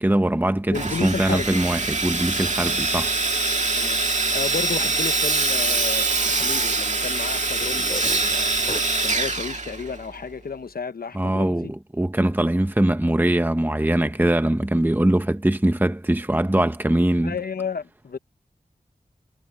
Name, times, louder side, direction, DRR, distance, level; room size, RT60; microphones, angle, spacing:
voice 1, 0.0-3.1 11.1-17.3, right 1 dB, 15° right, 1.0 m, -22 dB
voice 2, 0.7-1.6 3.7-4.0 4.3-8.5 9.0-11.7 17.2-18.2, left 6 dB, 85° left, 1.0 m, -32 dB
Sawing, 0.7-10.2, right 3 dB, 50° right, 2.0 m, -24 dB
sound 1, 7.5-9.3, left 2 dB, 45° left, 7.9 m, -38 dB
cardioid pair, 40°, 15 cm